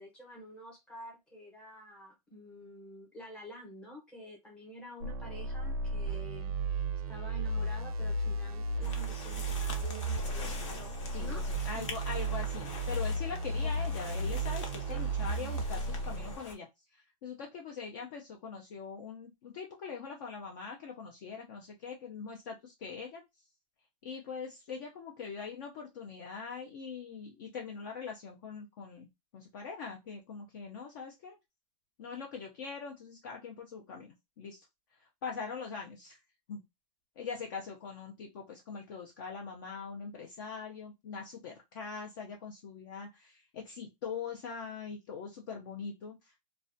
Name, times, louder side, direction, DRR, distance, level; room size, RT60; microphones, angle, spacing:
voice 1, 0.0-11.4 11.7-11.9 13.6-13.7 14.1-14.2 14.9-15.0, left 1 dB, 5° left, -2 dB, 0.7 m, -49 dB
sound 1, 5.0-16.4, right 2 dB, 80° right, 0.4 m, -34 dB
sound 2, 8.8-16.6, left 4 dB, 55° left, 0.7 m, -45 dB
voice 2, 11.1-16.7 16.9-23.2 24.0-29.1 29.3-31.4 32.0-34.7 35.0-36.2 36.5-36.6 37.2-46.4, left 5 dB, 35° left, 0 dB, 0.4 m, -42 dB
2.3 x 2.1 x 2.5 m, 0.21 s
supercardioid pair, 170°, 18 cm